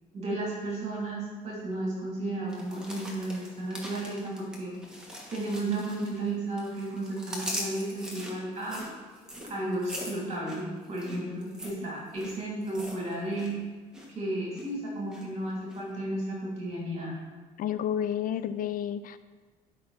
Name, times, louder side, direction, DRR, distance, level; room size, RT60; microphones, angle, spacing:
voice 1, 0.1-4.8 5.3-8.8 9.5-13.6 14.1-17.1, right 1 dB, 40° right, -5 dB, 3.1 m, -33 dB
sound 1, 2.5-6.3 6.6-13.5 13.8-14.1 14.5-15.2 15.7-15.8, equal, 5° right, 1.9 m, -41 dB
voice 2, 17.6-19.2, left 9 dB, 55° left, 13 dB, 0.4 m, -30 dB
11.0 x 5.9 x 4.3 m, 1.4 s
cardioid pair, 110°, 17 cm